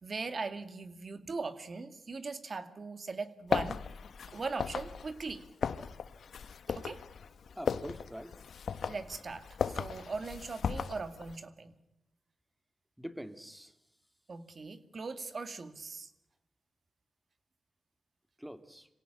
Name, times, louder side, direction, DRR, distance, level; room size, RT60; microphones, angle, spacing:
voice 1, 0.0-3.8 4.3-5.4 6.7-7.0 8.9-11.8 14.3-16.1, right 4 dB, 50° right, 10 dB, 2.3 m, -40 dB
sound 1, 3.5-11.3, left 6 dB, 75° left, 1.1 m, -37 dB
voice 2, 7.5-8.3 13.0-13.7 18.4-18.9, equal, 5° right, 10 dB, 2.3 m, -44 dB
26.5 x 17.5 x 10.0 m, 0.92 s
cardioid pair, 80°, 0 cm